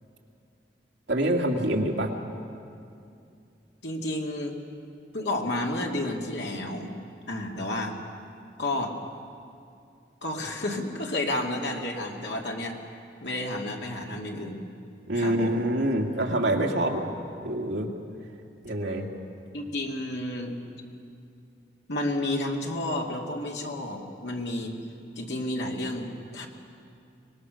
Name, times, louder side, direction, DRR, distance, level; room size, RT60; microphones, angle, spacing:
voice 1, 1.1-2.1 15.1-17.1 17.4-17.9 18.6-19.1, right 1 dB, 75° right, 1 dB, 2.2 m, -26 dB
voice 2, 3.8-4.6 5.1-6.9 7.3-8.0 8.6-9.0 10.2-12.8 13.2-14.6 15.1-15.6 19.5-20.5 21.9-24.8 25.2-26.5, left 1 dB, 75° left, 0 dB, 2.4 m, -31 dB
23.5 x 20.5 x 6.5 m, 2.5 s
head